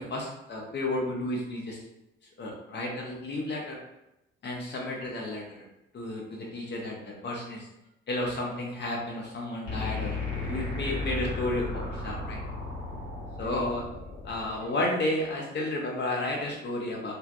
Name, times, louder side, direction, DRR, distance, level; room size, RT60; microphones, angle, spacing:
voice 1, 0.0-1.8 2.4-3.8 4.4-5.6 5.9-7.7 8.1-12.4 13.4-13.8 14.2-17.1, left 1 dB, 30° left, -1 dB, 0.8 m, -32 dB
sound 1, 9.6-14.6, left 3 dB, 65° left, 1.0 m, -34 dB
2.5 x 2.0 x 2.4 m, 0.89 s
figure-of-eight pair, 45°, 34 cm